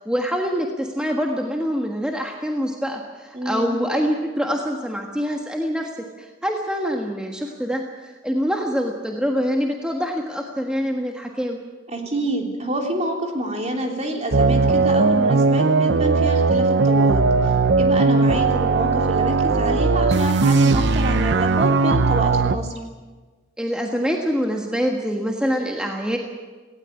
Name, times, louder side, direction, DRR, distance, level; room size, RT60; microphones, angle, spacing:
voice 1, 0.0-5.9 6.2-11.6 23.6-26.2, equal, 5° right, 1 dB, 1.5 m, -25 dB
voice 2, 3.3-3.8 11.9-17.2 17.8-22.7, right 1 dB, 35° right, 2 dB, 3.4 m, -27 dB
sound 1, 14.3-22.6, right 3 dB, 60° right, 0.7 m, -18 dB
18.5 x 17.0 x 9.6 m, 1.4 s
head